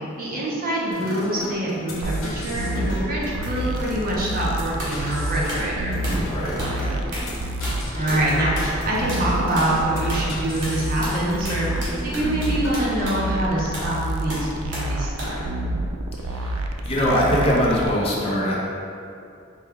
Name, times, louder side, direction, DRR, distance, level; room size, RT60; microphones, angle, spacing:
voice 1, 0.2-6.0 7.9-15.4, right 1 dB, 45° right, -5 dB, 0.7 m, -25 dB
sound 1, 0.9-13.0, left 1 dB, 85° left, 0.8 m, -35 dB
sound 2, 2.0-17.9, right 1 dB, 85° right, 0.3 m, -29 dB
sound 3, 4.8-5.0 5.5-5.7 6.0-6.3 6.6-6.8 7.1-7.3 7.6-8.3 8.6-8.8 9.1-9.3 9.6-9.7 10.1-10.3 10.6-13.3 13.7-13.9 14.3-14.9 15.2-15.4, equal, 60° right, 1.1 m, -33 dB
voice 2, 6.0-7.0 16.2-18.6, equal, 30° left, -5 dB, 0.6 m, -23 dB
4.4 x 2.3 x 3.5 m, 2.5 s
head